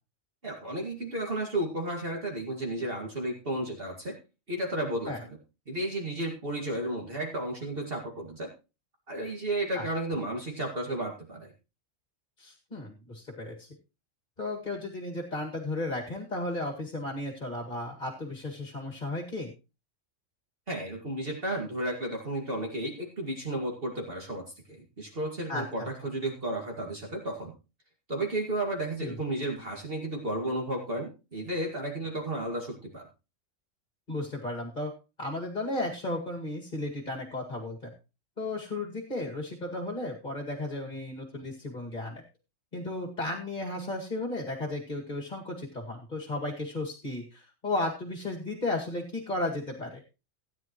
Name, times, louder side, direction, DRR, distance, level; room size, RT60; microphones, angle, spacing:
voice 1, 0.4-4.1 4.5-5.1 5.7-8.5 9.1-11.5 20.7-24.4 24.7-27.5 28.1-33.0, right 1 dB, 45° right, 1 dB, 2.3 m, -33 dB
voice 2, 12.4-13.7 14.4-19.5 25.5-25.6 29.0-29.2 34.1-34.9 35.2-37.9 38.4-42.2 42.7-50.0, left 2 dB, 35° left, 0 dB, 2.3 m, -34 dB
17.0 x 9.6 x 3.0 m, 0.30 s
omnidirectional pair, 1.3 m